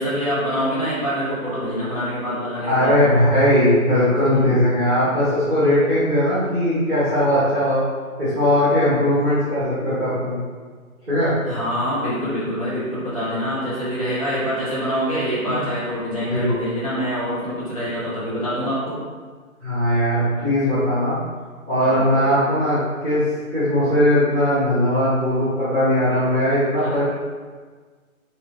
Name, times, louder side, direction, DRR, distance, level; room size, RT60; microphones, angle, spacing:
voice 1, 0.0-3.0 4.2-4.5 11.4-19.0 21.8-22.1 26.8-27.0, equal, 25° left, -10 dB, 1.0 m, -25 dB
voice 2, 2.7-7.8 8.2-10.4 11.1-11.3 15.4-15.6 16.3-16.5 19.6-21.2 21.7-23.2 23.5-27.0, left 1 dB, 5° right, -21 dB, 0.8 m, -19 dB
3.8 x 2.8 x 3.3 m, 1.5 s
figure-of-eight pair, 150°, 43 cm